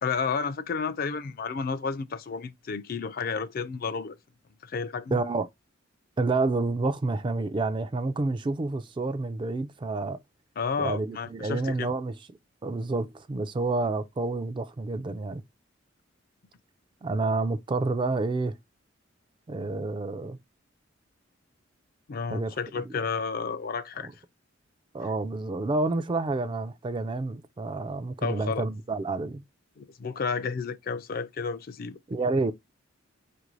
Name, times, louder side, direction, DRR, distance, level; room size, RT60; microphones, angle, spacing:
voice 1, 0.0-4.2 4.6-5.2 10.6-11.9 22.1-24.1 28.2-28.6 29.8-32.0, left 5 dB, 50° left, 0.4 m, -31 dB
voice 2, 5.1-5.5 6.2-10.2 10.8-12.1 12.6-15.4 17.0-18.6 19.5-20.4 22.3-22.5 22.8-22.9 24.0-24.1 24.9-29.4 32.1-32.5, right 3 dB, 25° right, 0.3 m, -29 dB
5.1 x 2.6 x 3.0 m
head